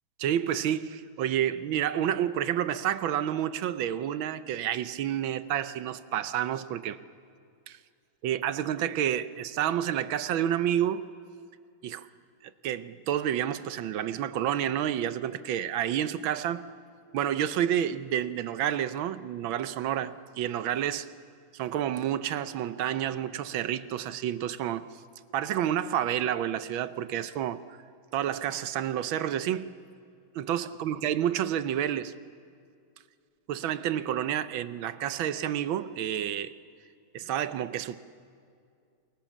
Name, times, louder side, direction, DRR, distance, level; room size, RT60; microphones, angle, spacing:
voice 1, 0.2-7.0 7.7-7.8 8.2-11.0 11.8-12.1 12.4-16.6 17.1-21.1 21.6-24.9 25.3-27.6 28.1-29.7 30.3-32.1 33.5-36.5 37.1-38.0, right 10 dB, 75° right, 1.5 m, -29 dB
29.5 x 22.0 x 7.3 m
omnidirectional pair, 2.3 m